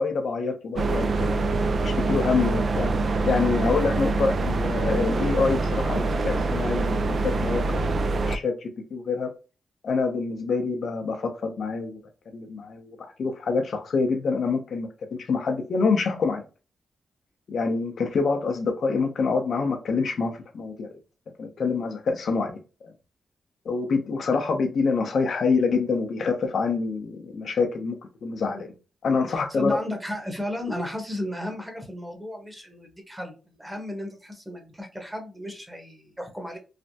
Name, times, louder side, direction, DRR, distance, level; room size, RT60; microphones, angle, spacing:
voice 1, 0.0-1.5 1.8-2.9 3.2-7.9 8.3-9.3 9.8-12.0 12.3-16.4 17.5-20.9 21.4-22.9 23.7-28.7 29.0-29.8, left 4 dB, 65° left, 5 dB, 0.5 m, -26 dB
sound 1, 0.8-8.4, right 3 dB, 55° right, 0.3 m, -25 dB
voice 2, 29.3-36.6, left 1 dB, 10° right, 3 dB, 1.0 m, -34 dB
3.2 x 2.0 x 2.7 m, 0.32 s
cardioid pair, 65°, 0 cm